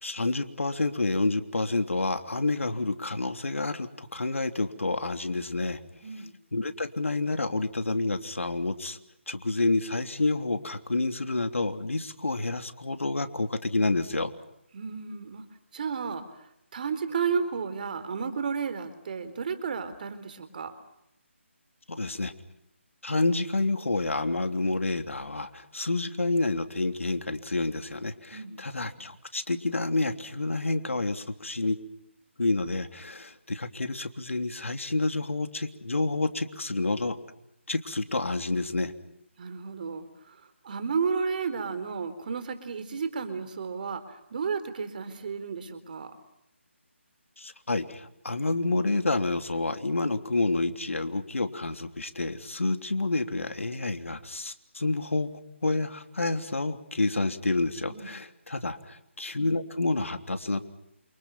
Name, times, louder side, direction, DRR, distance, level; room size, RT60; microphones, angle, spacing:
voice 1, 0.0-5.8 6.5-9.0 9.3-14.3 21.9-22.3 23.0-31.8 32.4-37.2 37.7-38.9 47.4-55.3 55.6-60.6, left 2 dB, 80° left, 8 dB, 3.2 m, -29 dB
voice 2, 6.0-6.3 14.7-15.4 15.7-16.2 16.7-20.7 28.3-28.6 39.4-40.1 40.6-44.0 44.3-46.1 57.9-58.1, right 5 dB, 40° right, 11 dB, 4.0 m, -32 dB
29.5 x 28.5 x 5.8 m, 0.79 s
figure-of-eight pair, 160°, 7 cm